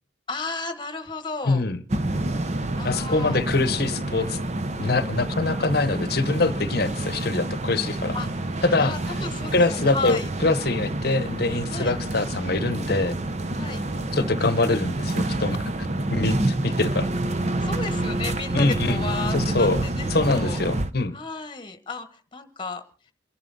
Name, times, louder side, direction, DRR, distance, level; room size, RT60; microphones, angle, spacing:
voice 1, 0.3-1.6 2.8-3.4 8.1-10.3 11.7-11.9 13.5-13.8 17.6-20.6 21.1-22.8, left 3 dB, 25° left, 10 dB, 1.3 m, -34 dB
voice 2, 1.5-1.8 2.8-4.4 4.8-8.2 8.6-8.9 9.5-13.2 14.1-17.1 18.5-19.1 19.3-19.8 20.1-21.2, left 3 dB, 55° left, 14 dB, 0.9 m, -24 dB
sound 1, 1.9-20.9, right 1 dB, 35° right, 0.8 m, -28 dB
28.5 x 11.0 x 4.0 m, 0.39 s
head